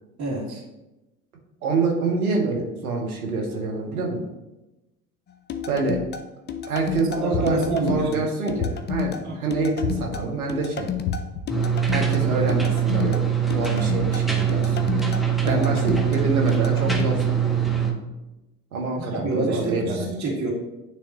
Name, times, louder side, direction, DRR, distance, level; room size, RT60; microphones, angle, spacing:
voice 1, 0.2-0.6 7.0-8.2 9.2-9.4 15.4-15.8 19.0-20.5, right 2 dB, 40° right, -5 dB, 2.2 m, -27 dB
voice 2, 1.6-4.2 5.7-6.0 6.6-10.9 11.9-13.3 13.5-15.0 15.4-17.6 18.7-20.1, right 3 dB, 85° right, 0 dB, 1.4 m, -26 dB
sound 1, 5.5-17.1, left 9 dB, 25° left, 0.5 m, -32 dB
sound 2, 7.3-8.0 8.6-9.2 9.8-10.5 11.1-11.7, left 5 dB, 60° left, 0.8 m, -31 dB
sound 3, 11.5-17.9, right 8 dB, ahead, 1.3 m, -23 dB
9.5 x 3.4 x 3.0 m, 0.99 s
hypercardioid pair, 70°, 43 cm